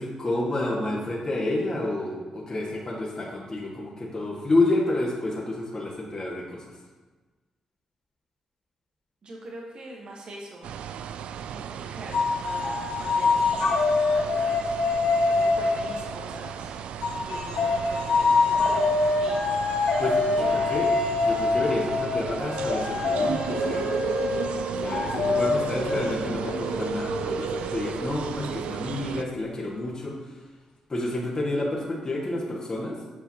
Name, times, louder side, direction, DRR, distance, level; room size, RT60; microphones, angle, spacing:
voice 1, 0.0-6.6 20.0-20.9 21.2-23.8 24.8-30.2 30.9-33.0, left 2 dB, 35° left, -4 dB, 1.7 m, -29 dB
voice 2, 9.2-10.7 11.4-14.7 15.4-16.8 17.1-19.4 20.3-20.8, right 1 dB, 55° right, -1 dB, 1.4 m, -42 dB
sound 1, 10.6-29.2, right 9 dB, 70° right, 0.3 m, -35 dB
sound 2, 12.1-16.5 17.0-28.4, left 3 dB, 70° left, 1.2 m, -25 dB
8.8 x 5.5 x 2.9 m, 1.3 s
hypercardioid pair, 45°, 2 cm